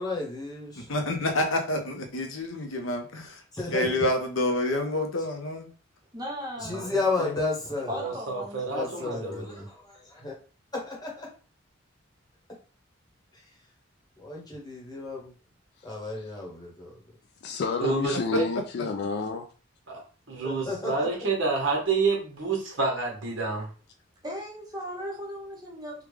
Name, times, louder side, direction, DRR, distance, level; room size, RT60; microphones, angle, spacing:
voice 1, 0.0-0.9 3.5-3.9 6.6-8.0 8.7-10.3 10.7-11.3 14.2-15.3 15.8-16.9 20.4-21.1, left 3 dB, 20° left, -2 dB, 1.1 m, -32 dB
voice 2, 0.8-3.4 3.7-5.7 7.2-7.3, left 1 dB, 75° left, 4 dB, 0.8 m, -28 dB
voice 3, 6.1-6.8 7.9-8.6 24.2-26.1, equal, 20° right, -1 dB, 0.7 m, -37 dB
voice 4, 8.0-9.7 17.8-18.5 19.9-23.7, right 4 dB, 65° right, -1 dB, 1.3 m, -29 dB
voice 5, 17.4-19.5, left 4 dB, 55° left, 4 dB, 0.3 m, -30 dB
3.5 x 2.3 x 3.2 m, 0.37 s
head